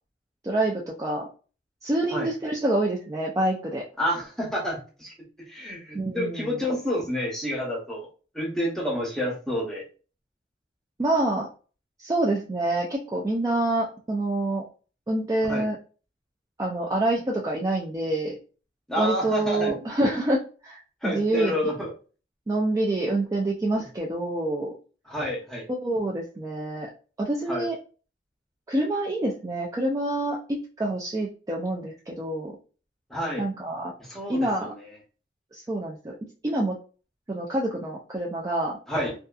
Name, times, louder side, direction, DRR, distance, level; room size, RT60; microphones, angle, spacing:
voice 1, 0.4-1.3 1.8-3.8 5.9-6.6 11.0-11.5 12.0-14.6 15.1-15.8 16.6-18.4 19.0-21.7 22.5-24.7 25.7-26.9 27.2-27.8 28.7-32.5 33.4-33.9 34.3-34.7 35.5-36.1 36.4-36.8 37.3-38.8, right 1 dB, 20° right, -2 dB, 0.3 m, -27 dB
voice 2, 4.0-8.1 8.3-9.8 15.5-15.7 18.9-19.9 21.0-21.9 25.1-25.7 27.5-27.7 33.1-33.4 34.1-34.9 38.9-39.1, equal, 5° left, -3 dB, 0.8 m, -29 dB
2.6 x 2.3 x 2.3 m, 0.36 s
head